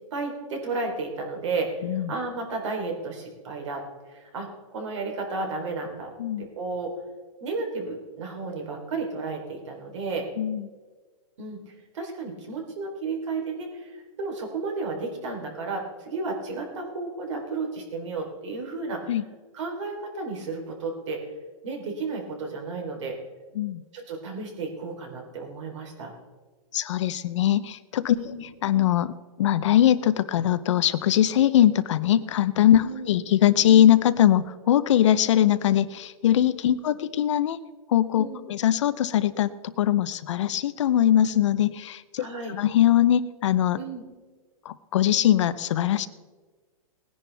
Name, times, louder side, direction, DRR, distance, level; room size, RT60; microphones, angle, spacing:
voice 1, 0.1-6.1 6.4-6.9 7.4-10.3 11.4-19.1 19.5-21.2 21.6-23.2 23.9-26.1 28.1-28.4 32.8-33.0 38.2-38.4 42.2-42.5 43.8-44.0, right 3 dB, 55° right, 2 dB, 3.6 m, -33 dB
voice 2, 1.8-2.1 6.2-6.5 10.4-10.6 19.1-19.2 23.6-23.8 26.7-28.2 28.6-29.1 29.4-37.6 37.9-43.8 44.6-46.1, left 11 dB, 55° left, 14 dB, 0.7 m, -21 dB
20.0 x 10.5 x 3.4 m, 1.4 s
hypercardioid pair, 160°, 18 cm